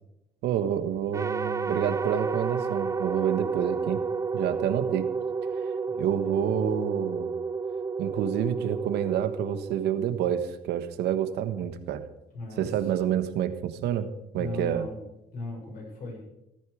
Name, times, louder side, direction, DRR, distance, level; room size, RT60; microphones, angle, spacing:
voice 1, 0.4-4.0 4.3-5.1 6.0-7.4 8.0-12.1 12.6-14.1 14.3-14.9, right 9 dB, 80° right, 11 dB, 1.4 m, -28 dB
sound 1, 1.1-10.4, right 5 dB, 20° right, 0.4 m, -31 dB
voice 2, 5.5-6.4 12.3-13.2 14.3-15.0 15.3-16.2, left 2 dB, 60° left, 0 dB, 7.1 m, -39 dB
15.0 x 13.5 x 5.0 m, 0.89 s
cardioid pair, 110°, 17 cm